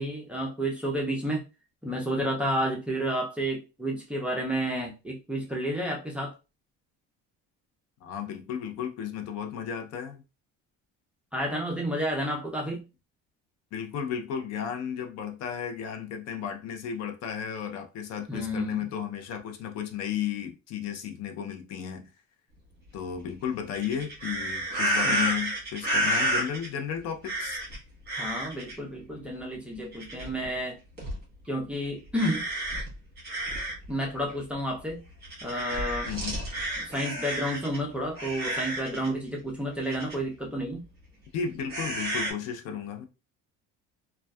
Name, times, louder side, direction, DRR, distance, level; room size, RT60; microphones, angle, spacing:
voice 1, 0.0-1.4 1.8-6.3 11.3-12.8 18.3-18.8 25.0-25.3 28.1-30.8 31.5-32.4 33.9-35.0 35.4-36.1 36.8-40.9, equal, 5° right, 0.5 m, -31 dB
voice 2, 8.0-10.2 13.7-22.1 22.9-27.6 36.1-36.4 41.3-43.0, left 8 dB, 55° left, 0.6 m, -34 dB
sound 1, 23.7-26.7 27.2-27.8 28.1-28.8 29.9-30.4 31.0-31.2 32.1-33.9 34.3-34.4 35.2-37.8 38.2-39.1 39.8-40.1 41.7-42.3, right 1 dB, 35° right, 1.2 m, -30 dB
2.5 x 2.3 x 2.2 m
cardioid pair, 150°, 31 cm